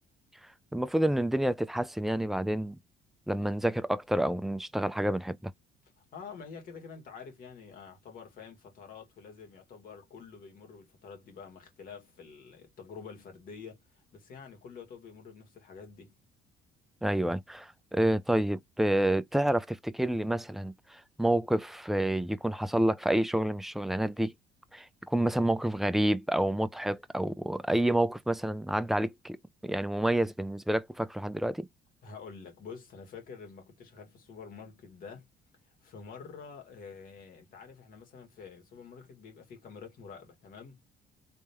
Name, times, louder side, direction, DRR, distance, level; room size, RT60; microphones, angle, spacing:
voice 1, 0.7-2.8 3.3-5.4 17.0-24.3 24.7-29.4 29.6-31.7, right 1 dB, ahead, 0.4 m, -28 dB
voice 2, 6.0-16.2 32.0-35.3 35.7-40.8, left 5 dB, 55° left, 2.0 m, -48 dB
3.6 x 3.3 x 2.9 m
cardioid pair, 110°, 17 cm